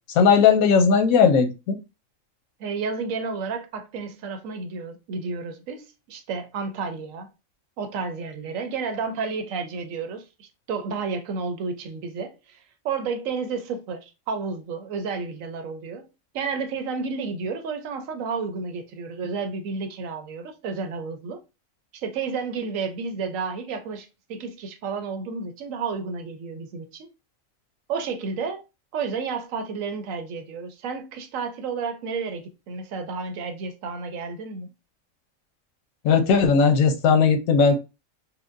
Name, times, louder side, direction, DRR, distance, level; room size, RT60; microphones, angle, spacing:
voice 1, 0.1-1.8 36.0-37.7, left 5 dB, 85° left, 1.1 m, -17 dB
voice 2, 2.6-7.3 7.8-16.1 16.3-21.4 21.9-27.1 27.9-28.6 28.9-34.7, right 5 dB, 75° right, 1.0 m, -31 dB
4.4 x 2.2 x 2.5 m
omnidirectional pair, 1.4 m